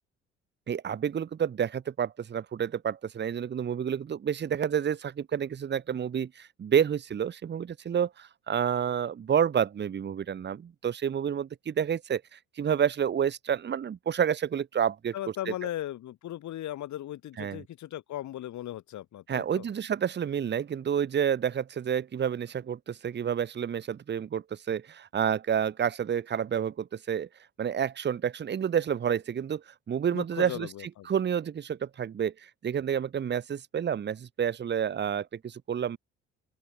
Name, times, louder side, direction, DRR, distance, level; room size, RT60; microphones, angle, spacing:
voice 1, 0.7-15.1 15.5-15.6 17.4-17.6 19.3-27.3 27.6-30.7 31.0-36.0, right 8 dB, 30° right, 1.1 m, -29 dB
voice 2, 15.1-19.7 30.1-31.1, left 13 dB, 55° left, 5.8 m, -37 dB
open air
figure-of-eight pair, 50°, 34 cm